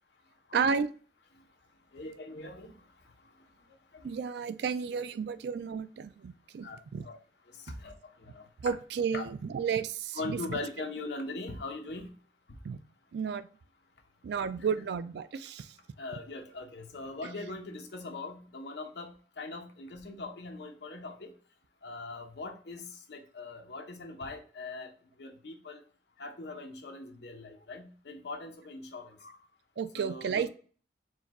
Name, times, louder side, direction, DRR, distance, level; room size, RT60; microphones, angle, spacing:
voice 1, 0.5-0.9 4.0-7.1 8.6-10.6 12.6-12.8 13.1-13.5 14.2-15.8 29.8-30.5, right 6 dB, 65° right, 13 dB, 0.3 m, -32 dB
voice 2, 1.9-2.8 3.9-4.1 6.6-6.8 7.0-7.2 7.5-8.5 9.1-9.2 10.1-12.1 16.0-21.3 21.8-24.9 25.2-25.8 26.2-29.4 29.9-30.4, left 3 dB, 70° left, 4 dB, 0.8 m, -41 dB
4.7 x 2.2 x 4.1 m, 0.41 s
head